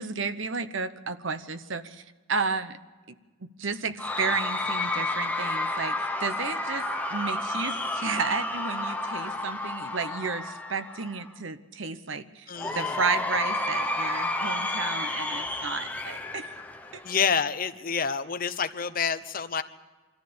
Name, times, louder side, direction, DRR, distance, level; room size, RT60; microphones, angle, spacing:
voice 1, 0.0-2.0 2.3-2.7 3.4-6.9 7.1-12.2 12.7-16.5, right 5 dB, 65° right, 12 dB, 0.9 m, -32 dB
Cheering / Crowd, 4.0-11.3 12.6-17.3, left 2 dB, 10° left, 1.0 m, -31 dB
voice 2, 12.5-13.0 17.0-19.6, left 6 dB, 40° left, 10 dB, 0.9 m, -28 dB
24.0 x 14.5 x 8.7 m, 1.3 s
head